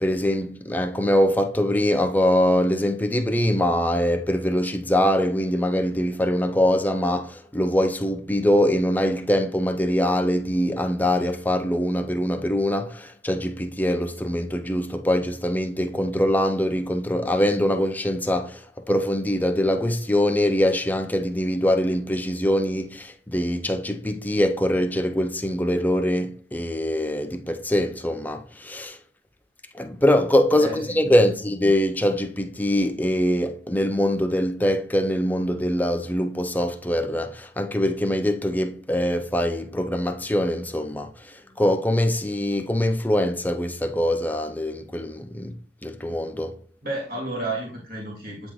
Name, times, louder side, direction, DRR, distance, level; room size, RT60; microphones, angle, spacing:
voice 1, 0.0-29.0 29.7-46.6, left 1 dB, 10° left, 0.6 m, -23 dB
voice 2, 30.6-31.0 46.8-48.5, right 2 dB, 55° right, 2.4 m, -31 dB
8.8 x 3.9 x 3.1 m
head